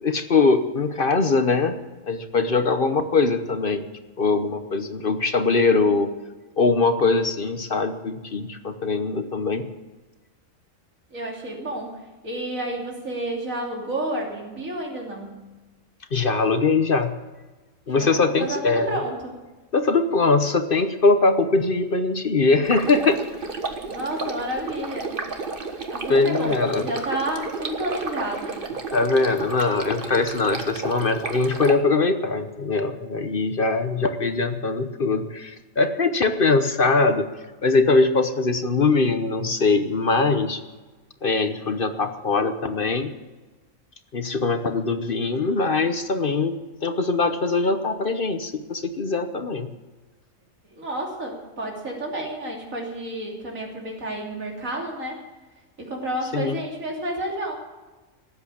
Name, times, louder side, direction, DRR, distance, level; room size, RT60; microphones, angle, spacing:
voice 1, 0.0-1.8 2.0-3.8 4.2-6.1 6.6-9.7 16.1-17.2 17.9-19.0 19.7-23.2 26.1-26.9 28.9-37.3 37.6-40.6 41.2-43.1 44.1-49.7 56.3-56.6, left 3 dB, 45° left, 9 dB, 1.1 m, -22 dB
voice 2, 11.1-15.4 18.0-19.4 23.9-25.1 25.9-28.6 50.7-55.2 55.8-57.5, right 1 dB, 80° right, 0 dB, 3.5 m, -30 dB
Stream, 22.6-31.7, right 3 dB, 45° right, 1.5 m, -32 dB
18.0 x 8.0 x 8.4 m, 1.2 s
omnidirectional pair, 1.4 m